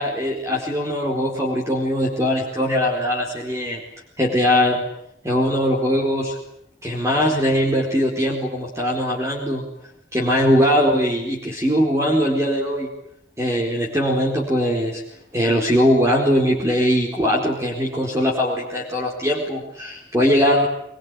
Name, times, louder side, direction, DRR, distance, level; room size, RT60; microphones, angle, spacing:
voice 1, 0.0-3.8 4.2-4.8 5.2-6.4 6.8-9.6 10.1-12.9 13.4-15.0 15.3-20.7, equal, 15° right, 0 dB, 4.3 m, -20 dB
23.0 x 22.5 x 9.8 m, 0.72 s
head